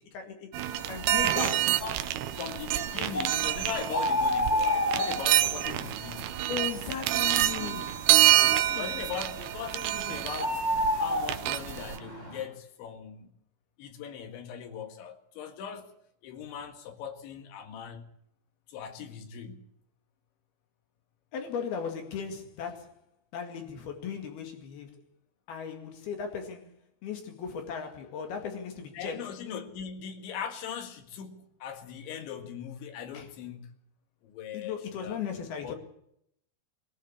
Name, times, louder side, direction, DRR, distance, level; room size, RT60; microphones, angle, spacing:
voice 1, 0.1-0.5 0.9-1.6 6.5-8.0 8.4-8.9 21.3-22.9 23.3-25.0 25.5-26.7 27.0-29.3 33.1-33.3 34.5-35.7, left 7 dB, 65° left, 3.8 m, -37 dB
sound 1, 0.5-12.0, right 14 dB, 75° right, 2.6 m, -27 dB
sound 2, 0.7-12.4, left 1 dB, 10° left, 4.4 m, -33 dB
voice 2, 1.2-2.1 2.3-6.4 8.7-10.6 11.0-13.3 13.8-15.9 16.2-18.1 18.7-19.7 28.9-33.7 34.2-35.2 35.6-35.8, left 7 dB, 85° left, 4.2 m, -39 dB
21.5 x 15.0 x 8.5 m
omnidirectional pair, 5.1 m